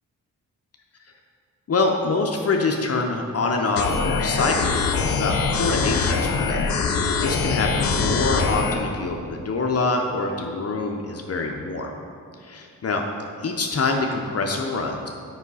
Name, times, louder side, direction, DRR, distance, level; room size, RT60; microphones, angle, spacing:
voice 1, 1.7-6.7 7.0-11.9 12.4-13.0 13.4-15.1, left 3 dB, 45° left, 2 dB, 0.8 m, -25 dB
sound 1, 3.8-8.8, left 5 dB, 75° left, 0.7 m, -23 dB
7.1 x 5.7 x 4.1 m, 2.3 s
supercardioid pair, 50°, 35 cm